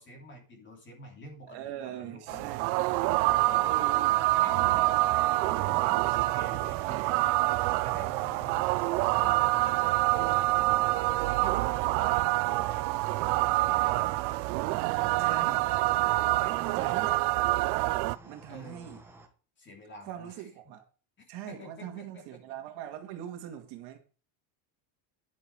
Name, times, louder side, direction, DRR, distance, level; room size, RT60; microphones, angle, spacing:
voice 1, 0.0-2.5 3.0-3.9 4.3-7.3 7.8-10.5 11.4-12.9 13.8-14.1 15.0-15.6 16.3-17.0 18.5-19.0 19.6-20.4 21.5-22.2, left 1 dB, 25° left, 2.9 m, -48 dB
voice 2, 1.4-2.7 3.6-4.2 15.2-15.7 16.8-17.3 18.2-19.0 20.0-20.8 21.3-24.0, right 11 dB, 55° right, 2.1 m, -41 dB
sound 1, 2.3-18.2, right 20 dB, 70° right, 0.7 m, -26 dB
sound 2, 4.1-19.3, right 1 dB, 5° right, 1.3 m, -52 dB
10.5 x 6.8 x 4.7 m
cardioid pair, 170°, 48 cm